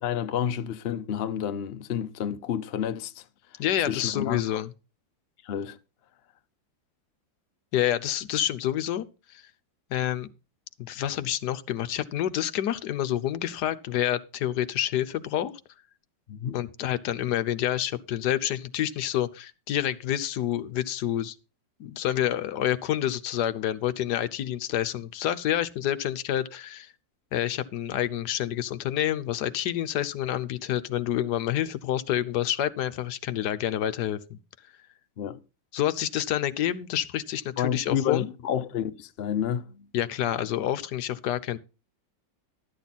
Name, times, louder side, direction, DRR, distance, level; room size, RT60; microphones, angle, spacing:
voice 1, 0.0-3.2 3.9-4.6 5.4-5.8 16.3-16.6 35.2-35.4 37.6-39.9, left 9 dB, 85° left, 0.5 m, -30 dB
voice 2, 3.6-4.7 7.7-9.4 9.9-10.3 10.8-15.5 16.5-21.3 21.8-26.9 27.3-34.4 35.7-38.3 39.9-41.6, left 11 dB, 65° left, 1.2 m, -28 dB
12.5 x 8.8 x 4.1 m
omnidirectional pair, 2.1 m